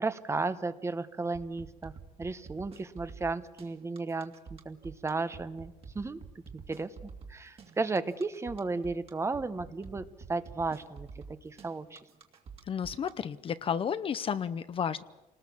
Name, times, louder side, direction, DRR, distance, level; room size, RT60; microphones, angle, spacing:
voice 1, 0.0-1.9 2.2-12.0, right 3 dB, 20° right, 12 dB, 1.0 m, -34 dB
sound 1, 1.3-13.1, right 5 dB, 40° right, 2.5 m, -47 dB
voice 2, 12.7-15.0, left 7 dB, 40° left, 14 dB, 0.7 m, -32 dB
28.0 x 20.0 x 7.2 m, 1.0 s
cardioid pair, 135°, 14 cm